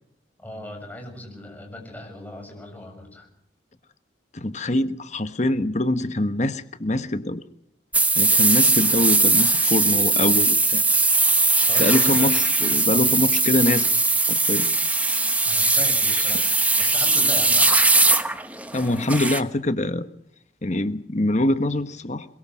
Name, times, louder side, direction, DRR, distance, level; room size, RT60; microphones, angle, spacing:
voice 1, 0.4-3.3 11.7-12.3 12.9-13.1 15.4-16.5 16.8-17.8, left 1 dB, 10° left, 2 dB, 7.0 m, -38 dB
voice 2, 4.3-7.4 8.2-10.8 11.8-13.9 14.3-14.7 18.7-20.1 20.6-22.3, left 1 dB, 40° left, 11 dB, 1.2 m, -24 dB
sound 1, 7.9-19.4, right 3 dB, 10° right, 1.1 m, -20 dB
22.5 x 22.5 x 6.2 m, 0.73 s
head